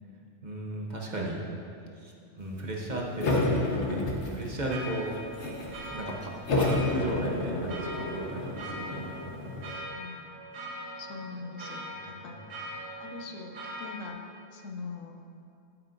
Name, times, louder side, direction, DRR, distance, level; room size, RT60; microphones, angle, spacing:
voice 1, 0.4-1.4 2.0-3.5 3.9-5.1 5.8-9.6 12.3-12.4, right 1 dB, 40° right, -2 dB, 1.0 m, -35 dB
sound 1, 3.2-4.7 5.1-5.8 6.5-9.8, left 2 dB, 65° left, 1.5 m, -30 dB
sound 2, 4.7-14.1, right 1 dB, 75° right, 1.9 m, -42 dB
voice 2, 9.9-10.3 11.0-14.2 14.5-15.2, left 4 dB, 85° left, 4 dB, 1.2 m, -43 dB
12.5 x 8.8 x 2.6 m, 2.5 s
omnidirectional pair, 1.3 m